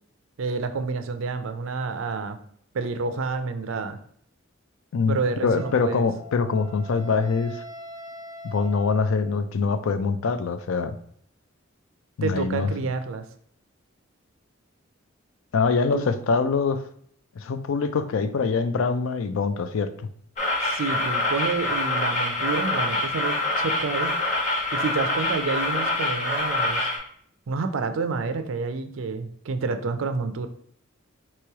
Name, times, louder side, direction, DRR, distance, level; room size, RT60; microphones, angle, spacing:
voice 1, 0.4-2.4 2.7-4.0 5.1-6.1 12.2-13.2 15.9-16.1 20.6-24.2 24.7-26.9 27.5-30.5, right 4 dB, 70° right, 9 dB, 0.4 m, -29 dB
voice 2, 4.9-7.6 8.4-11.0 12.2-12.7 15.5-16.8 17.4-20.1, left 4 dB, 75° left, 10 dB, 0.4 m, -24 dB
Wind instrument woodwind instrument, 5.5-9.5, left 1 dB, 20° right, 1.0 m, -42 dB
sound 1, 20.4-27.0, left 2 dB, 35° left, 1.1 m, -25 dB
3.1 x 3.0 x 4.6 m, 0.62 s
head